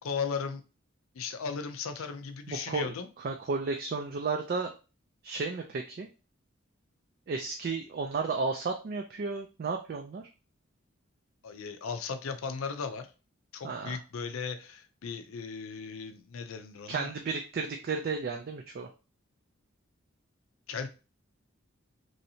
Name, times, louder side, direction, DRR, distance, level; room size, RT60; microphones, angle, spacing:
voice 1, 0.0-0.6 1.1-3.1 11.4-13.1 13.5-17.1 20.7-20.9, left 5 dB, 90° left, 8 dB, 0.5 m, -36 dB
voice 2, 2.5-4.7 5.2-6.1 7.3-10.2 13.6-14.0 16.9-18.9, right 4 dB, 45° right, 3 dB, 0.3 m, -33 dB
3.1 x 2.7 x 2.7 m, 0.33 s
head